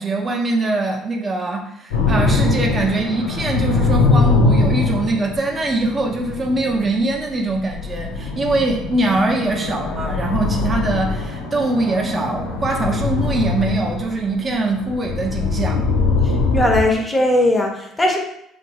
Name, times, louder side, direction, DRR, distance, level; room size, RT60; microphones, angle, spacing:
voice 1, 0.0-15.8, right 2 dB, 35° right, 1 dB, 0.5 m, -22 dB
sound 1, 1.9-16.8, left 3 dB, 80° left, 0.4 m, -22 dB
voice 2, 16.2-18.2, left 1 dB, 15° left, 1 dB, 0.5 m, -18 dB
2.6 x 2.2 x 2.8 m, 0.75 s
hypercardioid pair, 60°, 0 cm